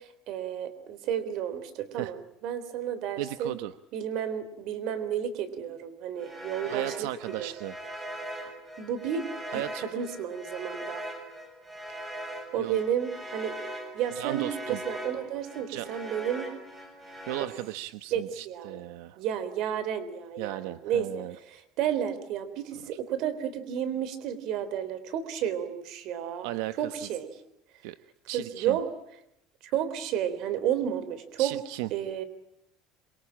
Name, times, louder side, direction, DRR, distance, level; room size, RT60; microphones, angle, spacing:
voice 1, 0.0-2.2 2.4-3.6 3.9-7.1 7.4-7.5 8.8-9.3 9.5-9.6 9.9-11.1 12.5-13.6 13.9-16.5 17.4-17.5 18.1-18.8 19.2-26.5 26.8-27.3 28.3-28.9 29.7-31.6 31.9-32.2, right 9 dB, 50° right, 14 dB, 3.5 m, -32 dB
voice 2, 3.2-3.7 6.6-7.8 9.5-9.9 12.6-12.8 14.1-14.8 15.7-15.9 17.3-19.2 20.4-21.3 26.4-27.0 27.8-28.0 28.3-28.8 31.4-31.9, right 16 dB, 90° right, 11 dB, 1.0 m, -36 dB
sound 1, 6.2-17.5, right 1 dB, 15° right, 6.6 m, -40 dB
27.5 x 24.0 x 8.8 m, 0.79 s
cardioid pair, 175°, 0 cm